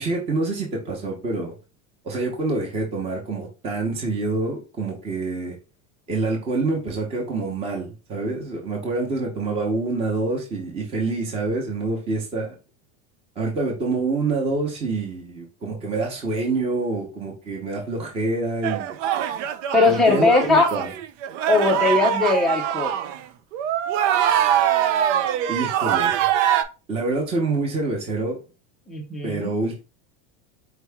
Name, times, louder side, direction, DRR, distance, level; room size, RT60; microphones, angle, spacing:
voice 1, 0.0-1.5 2.0-5.6 6.1-12.5 13.4-18.9 19.8-20.9 24.3-24.6 25.5-26.2 26.9-28.4 29.2-29.8, right 3 dB, 15° right, -1 dB, 0.8 m, -26 dB
sound 1, 18.6-23.2 23.5-26.6, right 10 dB, 80° right, 0.6 m, -23 dB
voice 2, 19.7-20.7 21.5-22.9 28.9-29.5, left 3 dB, ahead, -2 dB, 0.4 m, -19 dB
4.6 x 3.0 x 3.4 m, 0.30 s
supercardioid pair, 175°, 36 cm